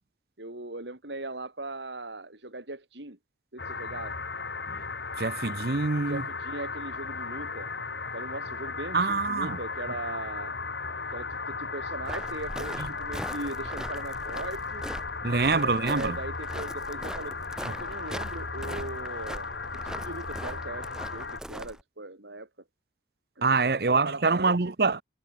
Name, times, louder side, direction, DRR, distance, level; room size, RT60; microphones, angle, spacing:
voice 1, 0.4-3.2 3.5-4.2 6.1-7.7 8.1-10.6 11.1-14.8 15.3-17.4 17.7-19.5 19.8-22.5 23.4-23.5 23.9-24.7, right 2 dB, 80° right, 4.2 m, -39 dB
sound 1, 3.6-21.4, left 4 dB, 75° left, 3.8 m, -36 dB
voice 2, 5.2-6.2 8.9-9.6 15.2-16.2 23.4-25.0, right 4 dB, 60° right, 0.8 m, -25 dB
Walk footsteps, 12.0-21.8, equal, 5° right, 4.4 m, -41 dB
head